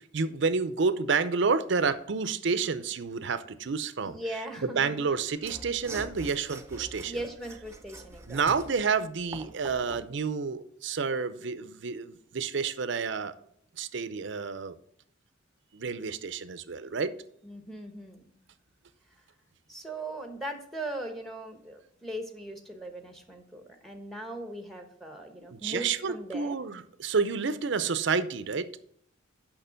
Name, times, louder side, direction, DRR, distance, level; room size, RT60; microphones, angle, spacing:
voice 1, 0.0-4.2 4.6-7.2 8.3-13.3 13.8-14.7 15.7-17.1 25.5-28.7, right 5 dB, 65° right, 13 dB, 0.6 m, -29 dB
voice 2, 4.0-5.2 7.1-8.7 17.4-18.3 19.7-26.6, right 1 dB, ahead, 4 dB, 1.0 m, -39 dB
Mechanisms / Sawing, 5.4-10.1, right 2 dB, 15° right, 0.7 m, -44 dB
6.7 x 5.8 x 5.7 m, 0.68 s
head